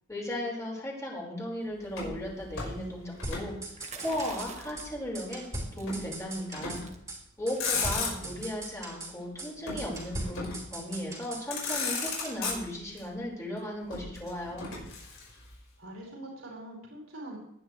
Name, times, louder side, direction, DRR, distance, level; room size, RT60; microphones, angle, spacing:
voice 1, 0.1-3.5 4.0-5.5 5.7-6.8 7.4-14.7, left 1 dB, 15° left, -4 dB, 5.2 m, -36 dB
Motor vehicle (road), 1.9-3.5 3.8-4.9 5.9-6.1 6.5-7.0 7.4-8.5 9.7-10.7 11.2-11.3 11.5-13.0 13.9-15.5, left 4 dB, 80° left, 5.4 m, -35 dB
sound 1, 3.2-4.5 4.8-4.9 5.1-6.8 7.1-7.2 7.5-9.1 9.4-9.5 9.8-11.8 12.1-12.4, right 1 dB, 15° right, 4.1 m, -40 dB
sound 2, 3.8-4.9 5.7-6.0 6.4-6.5 6.7-7.0 7.5-7.8, right 5 dB, 35° right, 1.7 m, -46 dB
voice 2, 15.8-17.4, right 1 dB, 85° right, -3 dB, 5.1 m, -44 dB
19.5 x 11.0 x 3.3 m, 0.79 s
head